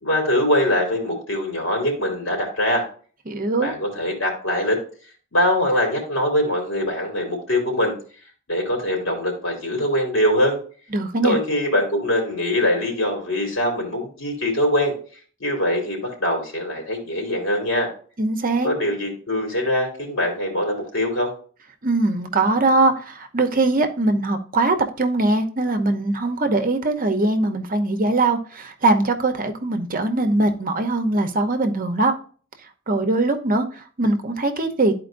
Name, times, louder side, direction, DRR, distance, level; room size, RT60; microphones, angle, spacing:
voice 1, 0.0-2.8 3.6-4.8 5.3-7.9 8.5-10.6 11.2-14.9 15.4-17.9 18.6-21.3, left 1 dB, 70° left, 0 dB, 3.2 m, -22 dB
voice 2, 3.3-3.7 10.9-11.4 18.2-18.7 21.8-32.1 32.9-34.9, right 2 dB, 45° right, 7 dB, 0.8 m, -21 dB
11.5 x 4.5 x 2.6 m, 0.41 s
head